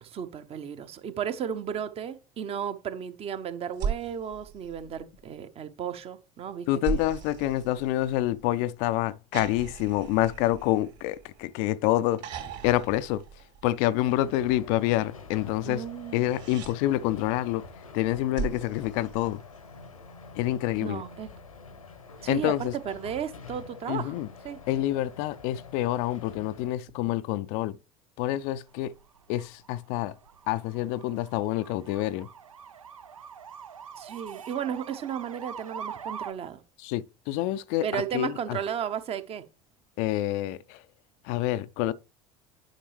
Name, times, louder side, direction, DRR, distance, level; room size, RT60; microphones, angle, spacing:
voice 1, 0.0-7.0 7.4-7.5 15.6-16.2 20.8-21.3 22.2-24.1 24.4-24.6 34.0-36.6 37.8-39.5, right 8 dB, 35° right, 0.9 m, -34 dB
sound 1, 3.7-5.3 6.8-8.5 9.3-11.6 12.2-14.0 16.0-16.8 18.3-19.8 21.4-21.5, right 7 dB, 55° right, 3.1 m, -38 dB
voice 2, 6.7-12.2 12.6-15.9 16.1-19.4 20.3-21.0 22.3-22.7 23.9-24.3 24.7-27.8 28.2-28.9 29.3-30.2 30.5-32.3 36.8-38.6 40.0-40.8 41.2-41.9, left 14 dB, 50° left, 0.4 m, -27 dB
sound 2, 13.9-26.7, left 4 dB, 80° left, 1.0 m, -47 dB
sound 3, 28.4-36.3, right 7 dB, 80° right, 0.5 m, -44 dB
10.0 x 5.3 x 3.2 m
figure-of-eight pair, 70°, 17 cm